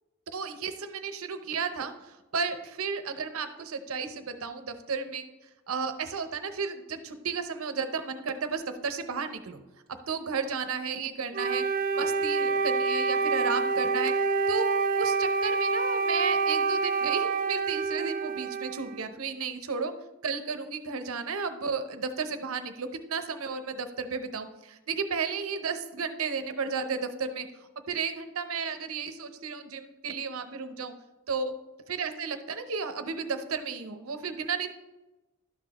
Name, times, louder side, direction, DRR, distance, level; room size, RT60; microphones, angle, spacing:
voice 1, 0.3-5.2 5.7-9.6 10.1-11.6 11.9-14.1 14.5-14.6 15.0-19.9 20.2-27.5 27.9-30.9 31.3-31.5 31.9-34.7, right 5 dB, 75° right, 9 dB, 0.7 m, -33 dB
Wind instrument woodwind instrument, 11.3-19.1, right 4 dB, 40° right, 0.3 m, -27 dB
11.5 x 6.2 x 3.0 m, 1.1 s
head